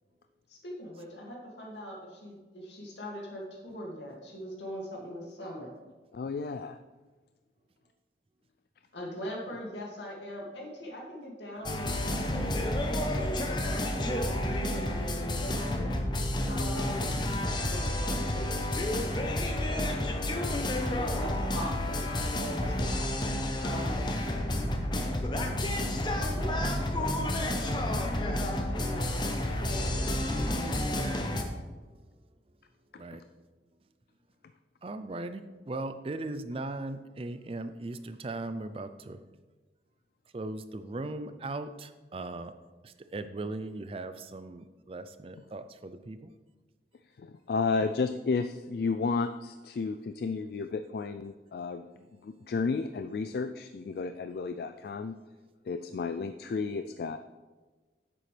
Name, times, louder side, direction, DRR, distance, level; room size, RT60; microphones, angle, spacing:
voice 1, 0.5-5.7 8.9-12.5 13.1-15.9 16.5-17.1 17.7-23.0 23.6-24.1 26.2-26.7 27.0-29.1 29.6-31.2, equal, 85° left, -2 dB, 2.3 m, -41 dB
voice 2, 6.1-6.8 32.9-33.2 47.2-51.8 52.2-55.2 55.6-57.2, left 4 dB, 60° left, 9 dB, 0.3 m, -32 dB
sound 1, 11.6-31.4, left 1 dB, 25° left, 0.8 m, -30 dB
voice 3, 34.8-39.2 40.3-42.5 42.8-46.3, right 2 dB, 30° right, 11 dB, 0.4 m, -38 dB
10.0 x 7.6 x 3.3 m, 1.3 s
head